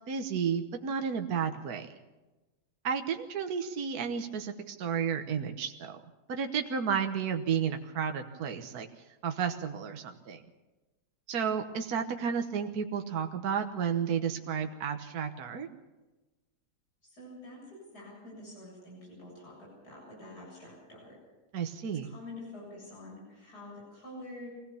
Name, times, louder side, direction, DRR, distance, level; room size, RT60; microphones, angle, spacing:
voice 1, 0.1-1.9 2.8-6.0 6.3-8.9 9.2-10.4 11.3-15.7 21.5-22.1, right 7 dB, 70° right, 5 dB, 1.6 m, -32 dB
voice 2, 17.0-21.2 22.0-24.5, left 1 dB, 75° left, -4 dB, 8.3 m, -47 dB
24.0 x 16.5 x 7.0 m, 1.1 s
omnidirectional pair, 1.7 m